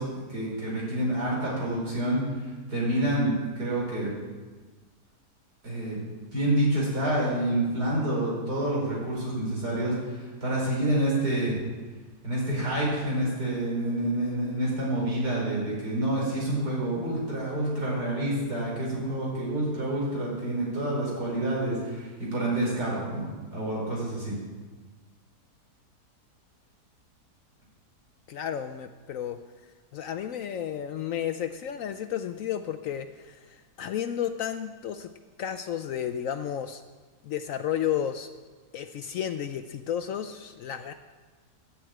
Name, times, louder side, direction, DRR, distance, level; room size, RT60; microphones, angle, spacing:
voice 1, 0.0-2.2 2.7-4.1 5.6-11.6 12.2-24.4, right 1 dB, 75° right, -5 dB, 5.1 m, -28 dB
voice 2, 28.3-29.4 29.9-35.1 35.4-36.8 37.2-38.3 38.7-40.9, left 9 dB, 70° left, 9 dB, 0.8 m, -32 dB
10.0 x 7.7 x 8.7 m, 1.3 s
omnidirectional pair, 1.7 m